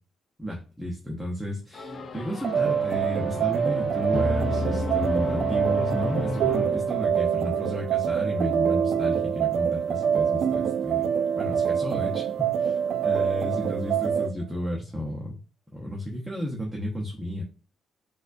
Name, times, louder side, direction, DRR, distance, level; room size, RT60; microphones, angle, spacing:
voice 1, 0.4-11.1 11.4-15.4 15.7-17.4, equal, 5° right, -2 dB, 0.8 m, -32 dB
sound 1, 1.7-7.3, left 2 dB, 45° left, 0.5 m, -32 dB
sound 2, 2.4-14.3, right 8 dB, 65° right, 0.3 m, -25 dB
4.1 x 2.3 x 2.5 m, 0.34 s
cardioid pair, 90°, 0 cm